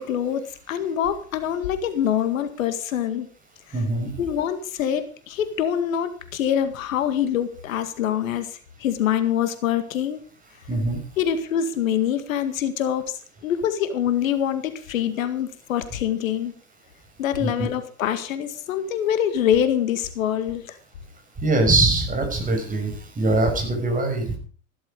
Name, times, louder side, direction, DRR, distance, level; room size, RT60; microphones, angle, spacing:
voice 1, 0.0-3.3 3.7-3.8 4.2-10.2 11.2-16.5 17.2-20.8, left 9 dB, 70° left, 10 dB, 2.0 m, -25 dB
voice 2, 3.7-4.1 10.7-11.0 17.4-17.7 21.4-24.3, right 2 dB, 20° right, 4 dB, 5.9 m, -22 dB
15.0 x 12.5 x 5.0 m, 0.40 s
hypercardioid pair, 105°, 42 cm